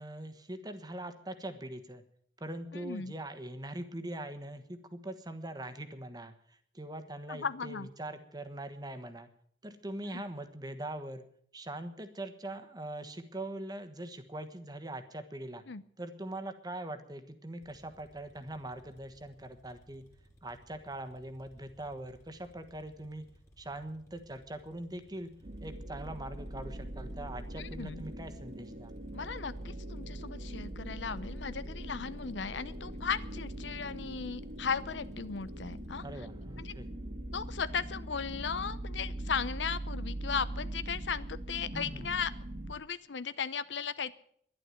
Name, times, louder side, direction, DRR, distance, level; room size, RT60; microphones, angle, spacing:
voice 1, 0.0-2.0 2.4-9.3 9.6-11.2 11.5-15.6 16.0-20.0 20.4-23.2 23.6-25.3 25.6-29.0 36.0-36.9 41.7-42.2, right 1 dB, 20° right, 8 dB, 1.3 m, -42 dB
voice 2, 2.7-3.1 7.3-7.9 10.1-10.2 15.7-15.8 27.6-28.0 29.1-36.0 36.6-36.7 37.3-42.3 42.7-44.2, left 6 dB, 85° left, 15 dB, 0.8 m, -36 dB
sound 1, 17.6-36.1, equal, 15° left, 2.4 m, -61 dB
sound 2, 25.4-42.7, right 1 dB, 40° right, 1.7 m, -41 dB
11.5 x 11.5 x 9.2 m, 0.64 s
head